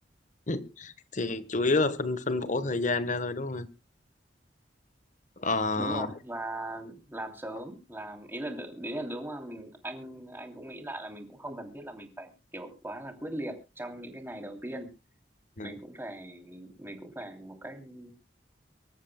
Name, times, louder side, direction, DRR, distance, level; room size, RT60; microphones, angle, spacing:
voice 1, 0.5-3.7 5.4-6.1 15.6-15.7, left 3 dB, 45° left, 14 dB, 1.2 m, -29 dB
voice 2, 5.8-14.9 15.6-18.1, right 1 dB, 10° right, 5 dB, 2.9 m, -39 dB
24.5 x 14.0 x 2.2 m, 0.30 s
head